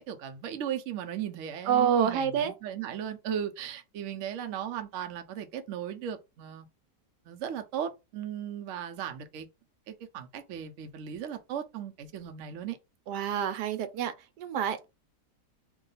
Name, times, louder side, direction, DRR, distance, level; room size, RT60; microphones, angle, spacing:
voice 1, 0.0-6.7 7.3-9.5 9.9-12.8, right 9 dB, 60° right, 0.8 m, -36 dB
voice 2, 1.7-2.5 13.1-14.9, right 8 dB, 85° right, 1.2 m, -28 dB
3.6 x 2.3 x 3.9 m
omnidirectional pair, 1.8 m